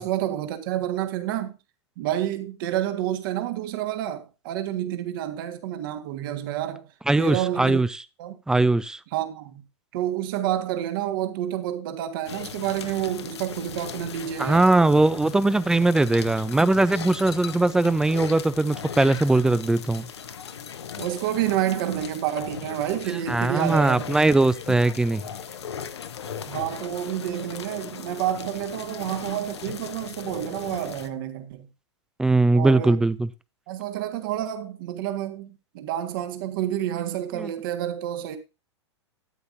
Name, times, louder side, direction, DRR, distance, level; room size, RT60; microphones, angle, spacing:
voice 1, 0.0-1.6 2.0-6.9 7.2-7.8 8.2-8.4 9.1-9.6 9.9-14.6 21.0-24.2 24.7-24.8 26.5-31.7 32.5-33.0 33.7-38.4, right 12 dB, 50° right, 1.6 m, -29 dB
voice 2, 7.1-7.9 8.5-9.0 14.4-20.1 23.3-25.2 32.2-33.3 37.3-37.5, right 2 dB, 5° right, 0.5 m, -20 dB
sound 1, 12.3-31.1, left 7 dB, 70° left, 1.2 m, -38 dB
13.0 x 9.5 x 2.7 m
figure-of-eight pair, 100°, 15 cm